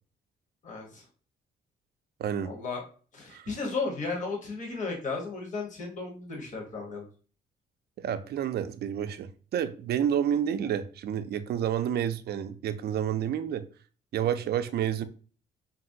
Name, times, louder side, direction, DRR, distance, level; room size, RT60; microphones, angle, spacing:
voice 1, 0.6-1.0 2.4-2.8 3.1-7.1, left 4 dB, 40° left, 1.0 m, -34 dB
voice 2, 2.2-2.5 3.3-3.5 8.0-13.7 14.1-15.0, right 9 dB, 55° right, 0.4 m, -29 dB
2.9 x 2.5 x 2.6 m
cardioid pair, 90°, 20 cm